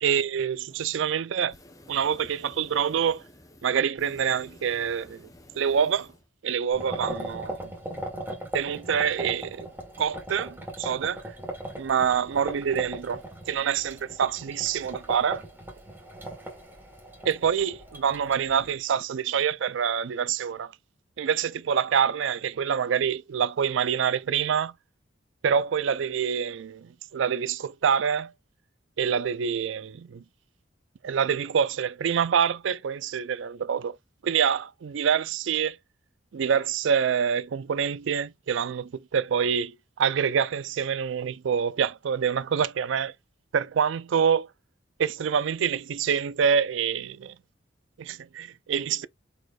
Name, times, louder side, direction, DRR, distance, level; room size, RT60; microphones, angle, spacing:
voice 1, 0.0-1.6 1.9-3.2 3.6-5.3 5.6-6.1 6.4-7.6 8.5-9.7 10.0-11.2 11.8-15.4 17.2-20.7 21.2-24.7 25.4-28.3 29.0-30.2 31.0-34.0 34.2-35.8 36.3-43.1 43.5-44.5 45.0-47.3 48.0-49.1, right 7 dB, 70° right, 0.4 m, -26 dB
sound 1, 0.7-1.0 1.3-6.3, left 1 dB, 15° left, 0.7 m, -52 dB
sound 2, 6.7-18.8, right 1 dB, 10° right, 1.5 m, -39 dB
4.6 x 4.3 x 2.3 m
head